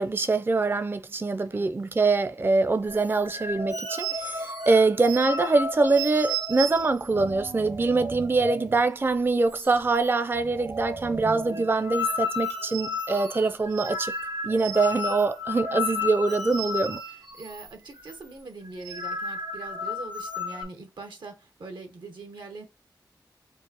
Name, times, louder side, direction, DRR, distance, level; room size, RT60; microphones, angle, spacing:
voice 1, 0.0-14.1 14.4-17.0, right 3 dB, 30° right, 0.4 m, -24 dB
sound 1, 2.9-8.8 9.1-9.2 9.5-10.1 10.4-17.7 18.0-18.2 18.7-20.6, left 1 dB, 65° right, 0.7 m, -33 dB
voice 2, 17.1-22.6, right 3 dB, 90° right, 1.0 m, -42 dB
4.5 x 2.6 x 2.8 m
wide cardioid pair, 70°, 8 cm